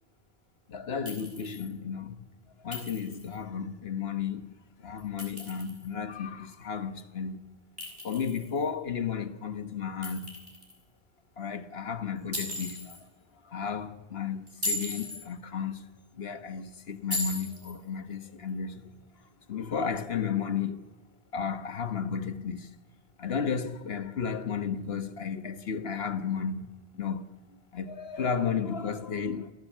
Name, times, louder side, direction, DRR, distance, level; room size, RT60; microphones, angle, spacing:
voice 1, 0.7-2.3 2.6-4.5 4.8-7.4 8.0-10.4 11.4-13.1 13.4-15.9 16.2-18.9 19.5-20.9 21.3-22.7 23.2-26.7 26.9-27.3 27.7-29.5, left 6 dB, 75° left, 1.4 m, -33 dB
Chink clink, 1.1-1.7 2.7-3.4 5.0-5.9 7.8-8.7 10.0-10.8 12.3-13.0 14.5-15.2 17.1-17.8, left 2 dB, 50° right, 5.6 m, -37 dB
28.5 x 15.0 x 7.3 m
omnidirectional pair, 1.1 m